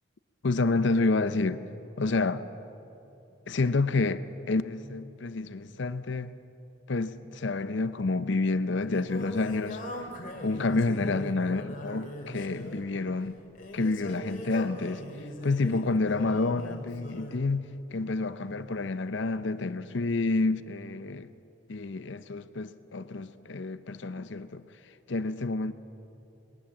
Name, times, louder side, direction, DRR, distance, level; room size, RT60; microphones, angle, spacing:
voice 1, 0.4-1.6 2.0-2.5 3.5-6.3 6.9-9.8 10.4-13.4 13.7-15.0 15.4-21.3 21.7-24.6 25.1-25.7, left 3 dB, 60° left, 0.6 m, -29 dB
Singing, 8.4-17.4, equal, 40° left, 2.6 m, -41 dB
21.0 x 19.0 x 7.3 m
head